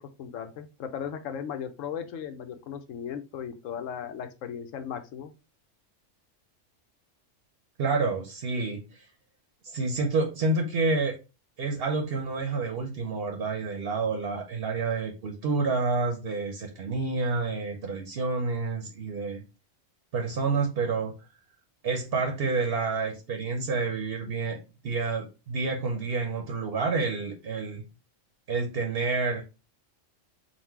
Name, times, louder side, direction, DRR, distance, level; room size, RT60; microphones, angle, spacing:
voice 1, 0.0-5.3, left 8 dB, 80° left, 8 dB, 1.0 m, -37 dB
voice 2, 7.8-9.1 9.6-11.2 11.6-19.4 20.1-21.1 21.8-24.6 24.8-27.8 28.5-29.4, right 4 dB, 55° right, 4 dB, 0.9 m, -29 dB
4.1 x 2.2 x 4.4 m, 0.29 s
omnidirectional pair, 1.3 m